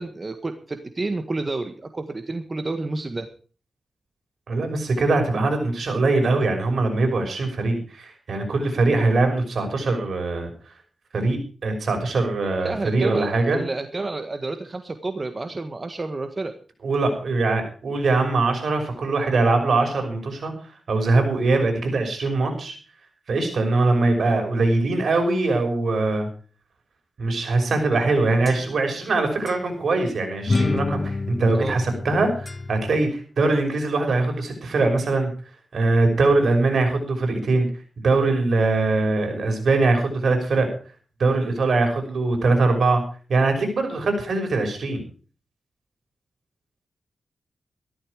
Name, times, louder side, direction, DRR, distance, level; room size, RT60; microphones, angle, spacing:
voice 1, 0.0-3.3 12.6-16.5 31.5-31.8, right 2 dB, 35° right, 7 dB, 1.6 m, -30 dB
voice 2, 4.5-10.5 11.1-13.6 16.8-22.8 23.3-26.3 27.2-35.3 35.7-37.7 38.0-40.7 41.2-43.0 43.3-45.0, right 3 dB, 70° right, 4 dB, 6.1 m, -22 dB
sound 1, 27.9-29.1 29.5-29.6 30.5-33.0, left 3 dB, 35° left, 0.8 m, -28 dB
15.0 x 13.0 x 4.9 m, 0.40 s
cardioid pair, 80°, 0 cm